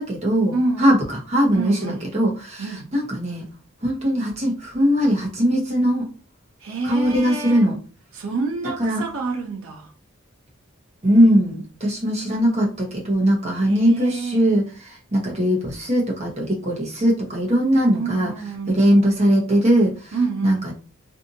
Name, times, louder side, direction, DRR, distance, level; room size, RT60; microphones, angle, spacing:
voice 1, 0.0-3.5 3.8-6.1 6.8-7.8 8.8-9.0 11.0-18.3 18.7-20.1 20.4-20.7, equal, 30° right, 0.9 m, -20 dB
voice 2, 0.5-1.1 1.5-2.1 2.6-2.9 6.6-7.7 8.1-9.9 13.6-14.5 17.9-19.0 20.1-20.6, right 3 dB, 85° right, 0.6 m, -28 dB
2.6 x 2.5 x 2.6 m
head